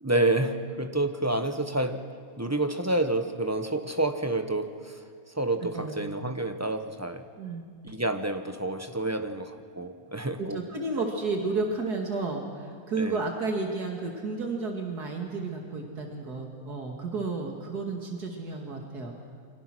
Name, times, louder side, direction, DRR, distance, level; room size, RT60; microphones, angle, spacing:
voice 1, 0.0-2.1 2.4-5.0 5.3-7.3 7.8-10.6 13.0-13.2, right 2 dB, 10° right, 7 dB, 1.1 m, -29 dB
voice 2, 10.4-19.1, right 3 dB, 85° right, 1 dB, 2.9 m, -32 dB
28.5 x 24.5 x 6.3 m, 2.2 s
omnidirectional pair, 1.6 m